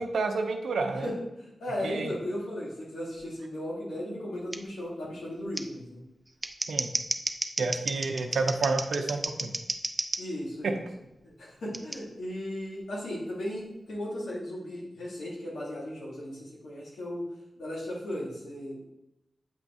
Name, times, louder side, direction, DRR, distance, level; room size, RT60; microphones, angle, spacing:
voice 1, 0.0-1.1 1.8-2.1 6.7-6.9 7.6-9.5, right 3 dB, 90° right, 5 dB, 0.6 m, -29 dB
voice 2, 1.0-6.0 10.2-10.8 11.2-17.2 17.6-18.9, left 1 dB, 90° left, -5 dB, 2.0 m, -36 dB
Scissors, 4.5-4.6 5.5-5.6 6.3-10.2 11.7-12.0, right 2 dB, 25° right, 0.5 m, -32 dB
7.7 x 3.5 x 4.2 m, 0.88 s
cardioid pair, 45°, 0 cm